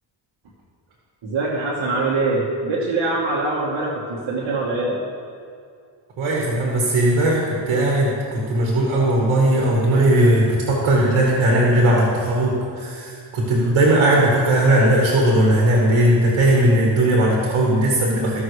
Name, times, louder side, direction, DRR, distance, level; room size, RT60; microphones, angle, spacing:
voice 1, 1.2-5.0, right 3 dB, 65° right, -5 dB, 1.4 m, -23 dB
voice 2, 6.2-18.4, right 1 dB, 90° right, -2 dB, 1.5 m, -18 dB
14.5 x 6.0 x 3.2 m, 2.3 s
cardioid pair, 60°, 47 cm